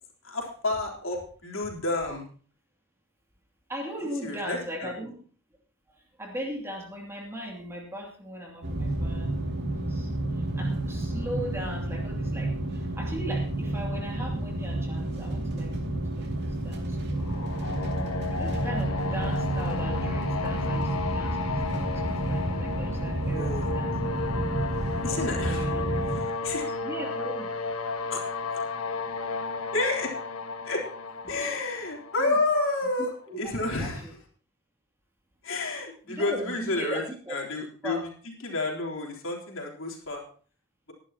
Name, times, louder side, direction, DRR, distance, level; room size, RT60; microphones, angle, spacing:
voice 1, 0.2-2.2 4.0-4.9 23.3-23.7 25.0-25.7 26.1-26.7 28.1-28.2 29.7-30.1 30.7-30.8 31.3-33.1 33.4-34.1 35.4-37.0 37.3-40.2, left 2 dB, 70° left, -1 dB, 3.6 m, -30 dB
voice 2, 3.7-5.2 5.9-9.3 9.7-17.3 18.3-23.9 25.3-25.9 26.4-27.5 31.2-31.4 32.2-32.4 33.3-33.5 33.8-34.1 36.1-37.4 37.8-38.1, equal, 10° right, -1 dB, 2.6 m, -39 dB
sound 1, 8.6-26.2, right 1 dB, 50° right, 2.5 m, -30 dB
sound 2, 17.2-33.0, left 4 dB, 90° left, 1.3 m, -33 dB
20.5 x 11.0 x 2.9 m, 0.43 s
head